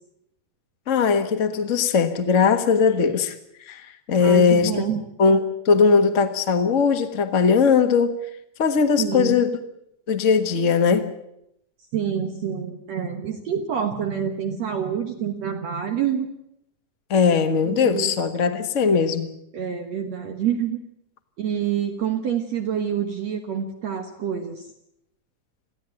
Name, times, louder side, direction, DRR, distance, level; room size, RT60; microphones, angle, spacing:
voice 1, 0.9-3.3 3.6-4.8 5.2-8.2 8.6-9.6 10.1-11.1 17.1-19.3, left 5 dB, 65° left, 0.7 m, -19 dB
voice 2, 4.2-5.0 9.0-9.4 11.9-16.3 17.6-18.1 19.5-20.8 21.4-24.7, right 8 dB, 60° right, 2.3 m, -27 dB
22.5 x 15.5 x 9.0 m
omnidirectional pair, 3.8 m